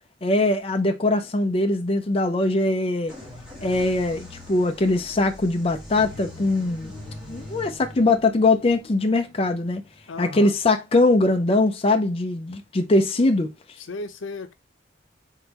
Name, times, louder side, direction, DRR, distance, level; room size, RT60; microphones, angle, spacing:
voice 1, 0.2-3.1 3.6-6.9 7.3-9.8 10.2-13.5, left 2 dB, 30° left, 0.5 m, -21 dB
sound 1, 3.1-10.7, left 1 dB, 5° right, 1.8 m, -42 dB
voice 2, 10.1-10.6 13.8-14.5, left 3 dB, 85° left, 0.7 m, -35 dB
4.0 x 3.8 x 2.9 m
head